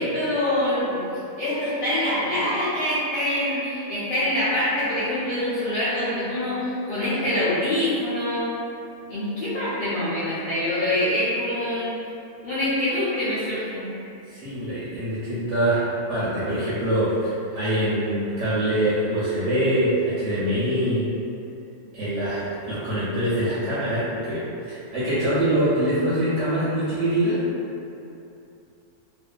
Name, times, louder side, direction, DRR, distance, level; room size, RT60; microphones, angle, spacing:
voice 1, 0.0-8.5 9.1-11.9 12.4-14.1, left 1 dB, 85° left, -13 dB, 0.4 m, -25 dB
voice 2, 14.3-21.1 21.9-27.4, right 1 dB, 65° right, -10 dB, 0.8 m, -24 dB
2.5 x 2.3 x 2.2 m, 2.7 s
omnidirectional pair, 1.6 m